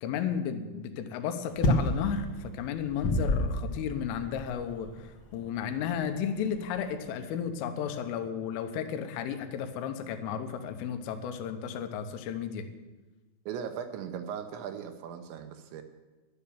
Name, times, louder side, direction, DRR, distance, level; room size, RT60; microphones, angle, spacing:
voice 1, 0.0-12.7, left 8 dB, 85° left, 8 dB, 3.5 m, -33 dB
sound 1, 1.5-7.0, left 1 dB, 70° left, 1.6 m, -31 dB
voice 2, 13.5-15.8, right 8 dB, 80° right, 7 dB, 2.9 m, -38 dB
11.5 x 10.5 x 7.0 m, 1.2 s
omnidirectional pair, 5.6 m